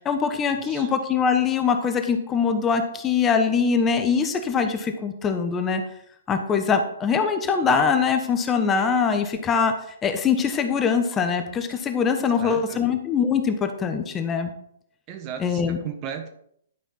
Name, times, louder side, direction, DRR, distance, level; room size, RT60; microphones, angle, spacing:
voice 1, 0.0-5.8 6.3-9.7 10.0-14.5 15.4-15.8, left 6 dB, 20° left, 6 dB, 1.1 m, -23 dB
voice 2, 12.2-12.8 15.1-16.3, right 8 dB, 35° right, 6 dB, 1.3 m, -36 dB
11.0 x 5.7 x 4.4 m, 0.69 s
figure-of-eight pair, 125°, 0 cm